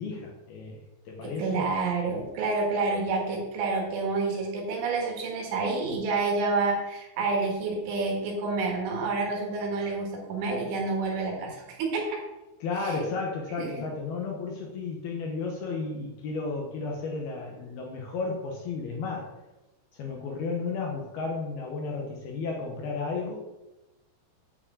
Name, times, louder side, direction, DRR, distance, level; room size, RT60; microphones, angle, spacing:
voice 1, 0.0-1.7 12.6-19.3 19.9-23.4, left 4 dB, 75° left, 0 dB, 2.3 m, -33 dB
voice 2, 1.2-12.2 12.8-13.1 13.6-13.9, right 3 dB, 70° right, 0 dB, 3.9 m, -29 dB
9.3 x 4.8 x 7.3 m, 1.0 s
omnidirectional pair, 5.9 m